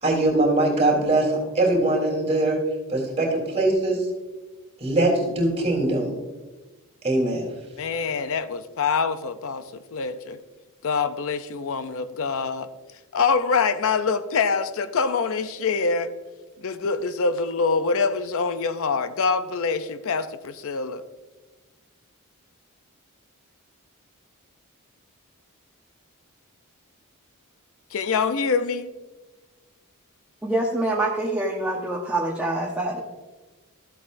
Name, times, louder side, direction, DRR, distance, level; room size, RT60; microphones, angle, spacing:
voice 1, 0.0-2.6 2.9-4.0 4.8-6.1 7.0-7.5, right 2 dB, 30° right, -1 dB, 3.2 m, -22 dB
voice 2, 7.8-9.6 9.9-10.4 10.8-12.7 13.1-16.1 16.6-21.0 27.9-28.9, left 5 dB, 65° left, 11 dB, 0.5 m, -25 dB
voice 3, 30.4-33.0, right 1 dB, 5° right, -4 dB, 1.0 m, -25 dB
14.0 x 8.2 x 2.6 m, 1.2 s
head